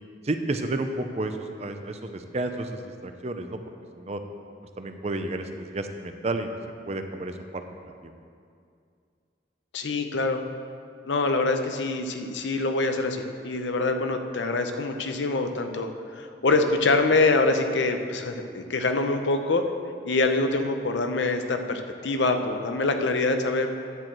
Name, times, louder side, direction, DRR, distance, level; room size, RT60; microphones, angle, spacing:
voice 1, 0.2-3.6 4.0-4.2 4.8-6.6 6.9-7.6 8.0-8.1, right 2 dB, 35° right, 7 dB, 0.5 m, -31 dB
voice 2, 9.7-10.4 11.0-19.6 20.0-23.7, left 3 dB, 90° left, 6 dB, 0.7 m, -25 dB
10.5 x 4.5 x 7.5 m, 2.3 s
head